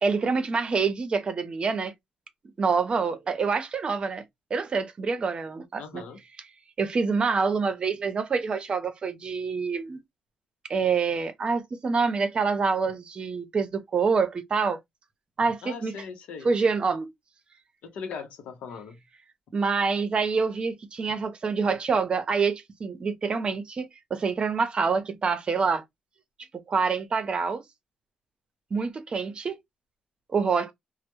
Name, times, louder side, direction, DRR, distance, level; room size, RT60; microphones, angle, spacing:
voice 1, 0.0-1.9 2.6-4.2 4.5-6.0 6.4-6.5 6.8-10.0 10.7-14.8 15.4-15.9 16.4-17.1 19.5-25.8 26.7-27.6 28.7-29.6 30.3-30.7, right 5 dB, 50° right, 0.6 m, -26 dB
voice 2, 5.8-6.2 15.6-16.5 17.8-19.0, left 6 dB, 85° left, 0.6 m, -39 dB
2.1 x 2.0 x 2.9 m
cardioid pair, 65°, 2 cm